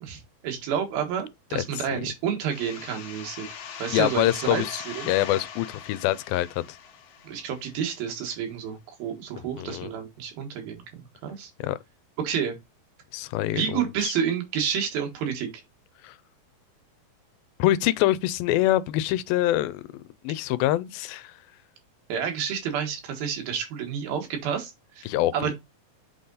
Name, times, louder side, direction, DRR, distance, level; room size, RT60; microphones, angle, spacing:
voice 1, 0.0-3.5 3.8-5.1 7.2-11.5 12.2-12.6 13.5-15.5 22.1-25.1 25.3-25.5, right 7 dB, 90° right, 3.5 m, -30 dB
sound 1, 2.5-8.0, left 8 dB, 65° left, 1.7 m, -41 dB
voice 2, 3.9-6.8 9.6-9.9 11.6-11.8 13.1-14.1 16.0-16.2 17.6-19.8 20.2-21.3 25.1-25.5, left 14 dB, 90° left, 2.4 m, -25 dB
8.1 x 3.9 x 3.9 m
omnidirectional pair, 4.1 m